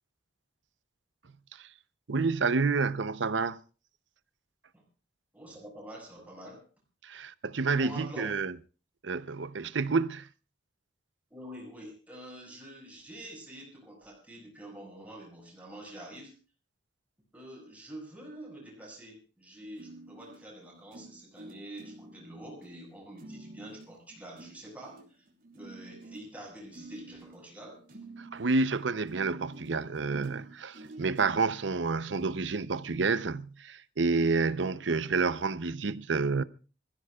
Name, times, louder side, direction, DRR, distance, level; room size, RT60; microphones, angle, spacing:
voice 1, 2.1-3.6 7.0-8.5 9.0-10.3 28.2-36.4, right 4 dB, 75° right, 0.7 m, -29 dB
voice 2, 5.3-6.7 7.1-7.2 7.7-8.3 11.3-16.3 17.3-25.2 25.5-27.8, right 1 dB, 10° right, 6.2 m, -47 dB
sound 1, 19.8-31.6 32.2-32.3 32.8-33.0, right 2 dB, 50° right, 3.3 m, -50 dB
26.0 x 15.0 x 2.4 m
head